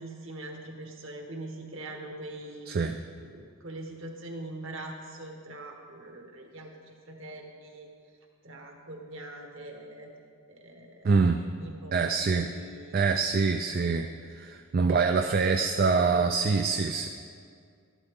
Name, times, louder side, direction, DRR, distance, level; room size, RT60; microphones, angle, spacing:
voice 1, 0.0-2.7 3.2-7.9 8.4-10.1 10.5-11.1 11.5-13.1 13.7-13.9 14.8-16.2, right 1 dB, 60° right, 2 dB, 1.4 m, -43 dB
voice 2, 2.7-3.0 11.0-11.4 11.9-12.5 12.9-17.1, right 4 dB, 40° right, 6 dB, 0.3 m, -25 dB
12.5 x 12.0 x 3.7 m, 2.2 s
head